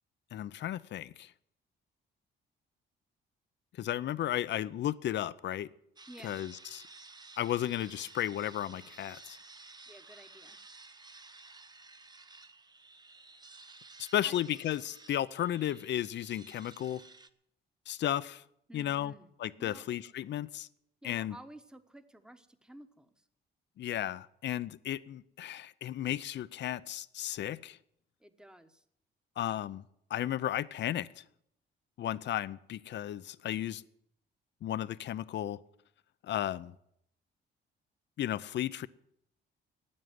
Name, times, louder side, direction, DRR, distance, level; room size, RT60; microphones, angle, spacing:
voice 1, 0.3-1.3 3.8-5.7 6.2-6.8 7.4-9.4 14.0-17.0 17.9-18.4 18.7-19.1 19.4-20.7 21.0-21.3 23.8-27.8 29.4-29.8 30.1-31.2 32.0-33.8 34.6-35.6 36.2-36.7 38.2-38.9, left 12 dB, 65° left, 0.6 m, -34 dB
sound 1, 6.0-17.3, right 3 dB, 20° right, 0.8 m, -54 dB
voice 2, 6.1-6.4 9.9-10.6 14.0-14.4 18.7-19.3 19.6-19.8 21.0-23.2 28.2-28.8, right 1 dB, 5° right, 1.2 m, -53 dB
13.0 x 9.0 x 9.6 m
cardioid pair, 90°, 20 cm